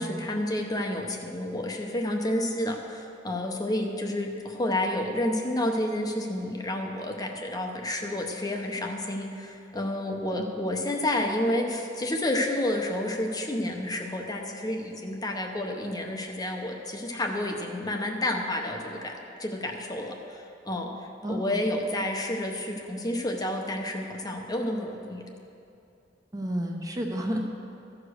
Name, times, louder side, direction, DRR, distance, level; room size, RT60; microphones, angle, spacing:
voice 1, 0.0-20.9 21.3-25.3, left 1 dB, 20° left, 2 dB, 0.7 m, -30 dB
voice 2, 21.2-21.6 26.3-27.4, equal, 20° right, 1 dB, 0.7 m, -31 dB
14.0 x 5.0 x 6.3 m, 2.7 s
head